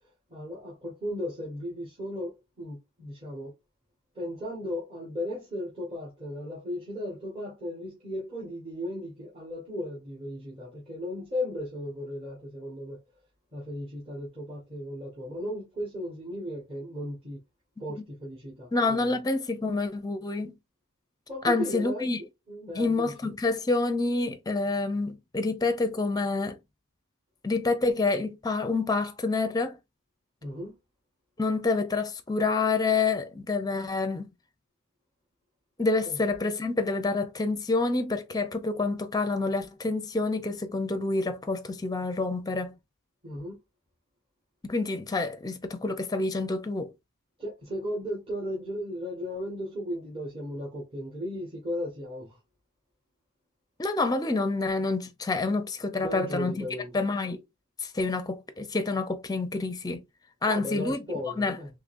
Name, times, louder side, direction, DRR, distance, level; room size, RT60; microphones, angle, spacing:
voice 1, 0.3-3.5 4.1-13.0 13.5-17.4 17.8-19.1 21.3-22.1 22.5-23.1 30.4-30.8 36.0-36.2 43.2-43.6 47.4-52.4 56.0-56.9 60.5-61.7, left 1 dB, 25° right, 1.2 m, -36 dB
voice 2, 18.7-20.5 21.4-22.2 22.7-26.6 27.4-29.8 31.4-34.3 35.8-42.8 44.6-46.9 53.8-56.6 56.9-57.4 57.8-60.0 60.4-61.0 61.4-61.6, left 3 dB, 15° left, 0.5 m, -28 dB
3.7 x 3.2 x 2.5 m
head